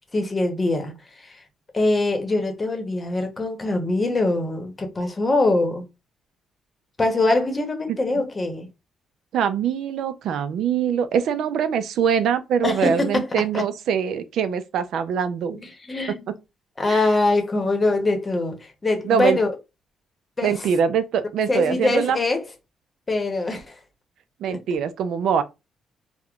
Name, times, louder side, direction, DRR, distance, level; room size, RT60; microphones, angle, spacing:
voice 1, 0.1-0.9 1.2-1.4 1.7-5.8 7.0-8.7 12.6-13.3 13.5-13.6 15.9-16.3 16.8-19.5 20.4-20.6 21.4-22.4 23.1-23.7 24.5-24.6, left 2 dB, 25° left, 0.8 m, -23 dB
voice 2, 9.3-15.6 16.9-17.1 19.0-19.4 20.4-22.2 24.4-25.4, right 7 dB, 75° right, 0.4 m, -23 dB
3.5 x 2.1 x 2.3 m
cardioid pair, 90°, 0 cm